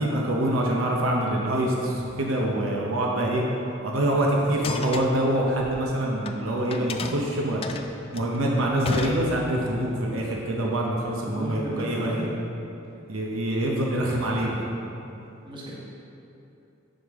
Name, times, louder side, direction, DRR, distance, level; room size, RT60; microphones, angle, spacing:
voice 1, 0.0-3.4 3.8-7.6 8.1-12.3 13.1-14.6, right 1 dB, 80° right, -2 dB, 0.8 m, -25 dB
sound 1, 4.5-6.4 6.7-9.8, left 4 dB, 30° left, 0.3 m, -34 dB
voice 2, 11.2-12.3 12.9-13.0 13.7-13.9 15.4-15.7, equal, 25° right, -6 dB, 1.3 m, -34 dB
7.7 x 5.1 x 3.6 m, 2.7 s
head